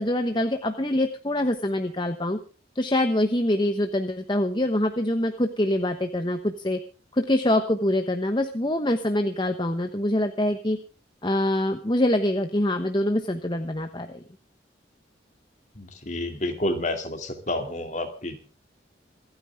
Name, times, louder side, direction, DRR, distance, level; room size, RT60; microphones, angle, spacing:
voice 1, 0.0-2.4 2.7-6.8 7.1-10.8 11.2-14.2, left 1 dB, 25° left, 7 dB, 1.1 m, -25 dB
voice 2, 15.8-18.3, left 1 dB, 40° left, 5 dB, 2.7 m, -29 dB
27.0 x 9.6 x 3.6 m, 0.37 s
head